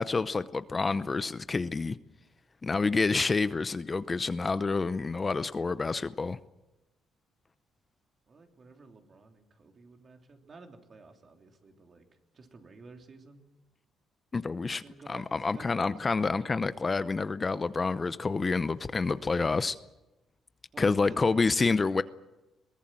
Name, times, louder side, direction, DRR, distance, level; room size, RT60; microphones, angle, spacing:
voice 1, 0.0-2.0 2.6-6.4 14.3-14.8 15.1-19.8 20.8-22.0, left 4 dB, 30° left, 14 dB, 0.7 m, -28 dB
voice 2, 8.3-12.0 12.3-13.4 14.8-15.9 20.7-21.4, right 3 dB, 45° right, 3 dB, 3.3 m, -52 dB
22.5 x 18.5 x 7.6 m, 1.0 s
cardioid pair, 90°, 0 cm